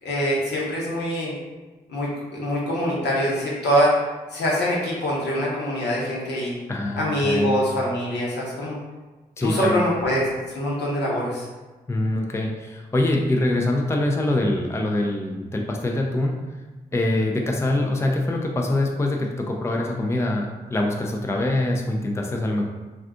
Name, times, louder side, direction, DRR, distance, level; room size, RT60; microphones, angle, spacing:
voice 1, 0.0-1.3 1.9-3.9 4.3-6.5 7.0-8.8 9.4-11.5, equal, 70° left, -5 dB, 1.0 m, -24 dB
voice 2, 6.7-7.6 9.4-9.8 11.9-16.3 16.9-22.7, left 1 dB, 15° left, 1 dB, 0.4 m, -24 dB
2.4 x 2.4 x 3.6 m, 1.2 s
supercardioid pair, 40°, 18 cm